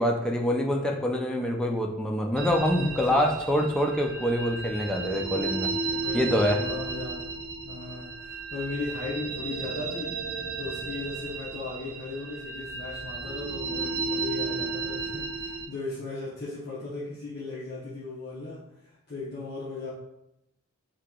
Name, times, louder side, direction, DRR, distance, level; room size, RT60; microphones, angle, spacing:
voice 1, 0.0-5.7 6.1-6.6, equal, 5° left, 1 dB, 0.4 m, -25 dB
sound 1, 2.4-15.6, right 4 dB, 50° right, 0.6 m, -34 dB
voice 2, 2.8-3.3 5.8-10.2 10.6-19.9, left 3 dB, 50° left, -10 dB, 0.8 m, -37 dB
2.9 x 2.8 x 3.6 m, 0.84 s
head